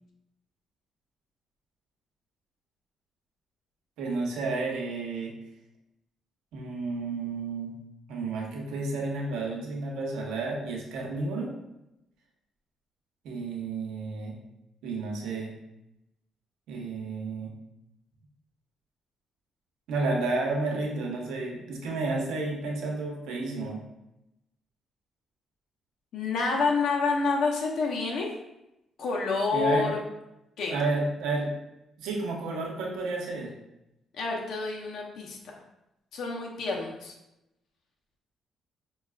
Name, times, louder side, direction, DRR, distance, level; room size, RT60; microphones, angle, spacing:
voice 1, 4.0-5.4 6.5-7.8 8.1-11.5 13.2-14.4 14.8-15.5 16.7-17.5 19.9-23.8 29.5-29.9 30.7-31.5 32.0-33.5, right 3 dB, 90° right, 0 dB, 0.8 m, -31 dB
voice 2, 26.1-28.3 29.0-30.0 30.6-30.7 34.1-35.4 36.1-37.1, left 4 dB, 70° left, -1 dB, 0.6 m, -28 dB
5.5 x 2.3 x 2.3 m, 0.89 s
cardioid pair, 90°, 0 cm